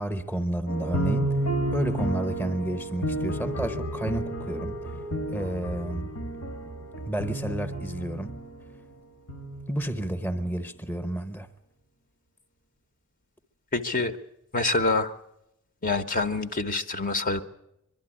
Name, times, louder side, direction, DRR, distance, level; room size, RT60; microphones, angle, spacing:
voice 1, 0.0-1.4 1.7-4.9 5.3-6.1 7.1-8.4 9.7-11.5, right 1 dB, 10° left, 0.9 m, -31 dB
sound 1, 0.7-8.7 9.3-10.4, right 1 dB, 85° left, 1.7 m, -31 dB
voice 2, 13.7-14.1 14.5-15.1 15.8-17.4, left 3 dB, 40° left, 0.9 m, -26 dB
23.5 x 12.0 x 9.9 m
head